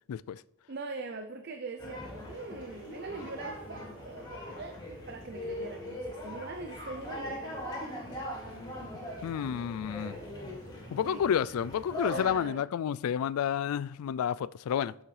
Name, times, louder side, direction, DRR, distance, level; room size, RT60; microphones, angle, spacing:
voice 1, 0.1-0.4 9.2-10.2 10.9-14.9, left 8 dB, 90° left, 0.3 m, -30 dB
voice 2, 0.7-4.8 5.1-7.4 11.0-11.2 12.0-12.6, right 3 dB, 50° right, 0.6 m, -42 dB
sound 1, 1.8-12.3, equal, 20° left, 2.5 m, -40 dB
11.0 x 7.2 x 3.3 m
head